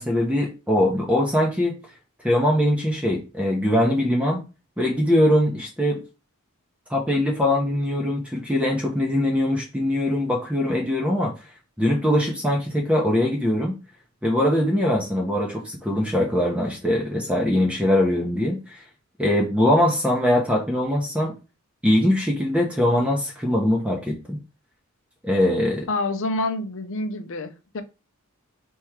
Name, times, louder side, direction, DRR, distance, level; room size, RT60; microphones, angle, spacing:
voice 1, 0.0-1.8 2.2-4.4 4.8-6.0 6.9-11.3 11.8-13.8 14.2-18.8 19.2-21.3 21.8-24.4 25.2-25.9, left 1 dB, 5° right, 0.7 m, -22 dB
voice 2, 25.9-27.8, left 2 dB, 60° left, 0.6 m, -27 dB
3.5 x 3.0 x 4.5 m
head